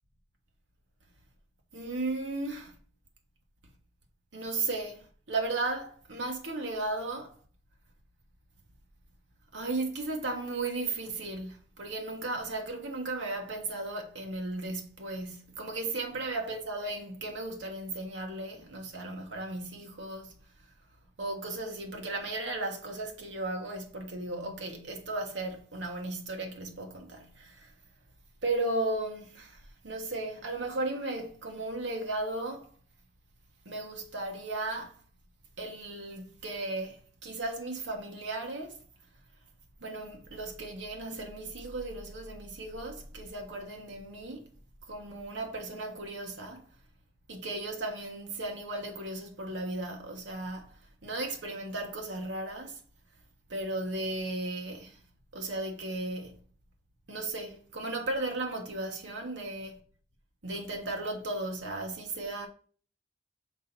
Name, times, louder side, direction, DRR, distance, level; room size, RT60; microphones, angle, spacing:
voice 1, 1.7-2.7 4.3-7.3 9.5-20.3 21.2-27.7 28.4-32.7 33.6-35.0 35.6-38.8 39.8-44.4 44.9-46.7 47.3-52.8 53.5-55.0 55.3-56.4 57.1-59.8 60.4-62.5, right 2 dB, 85° right, 1.2 m, -35 dB
6.1 x 4.0 x 4.0 m
head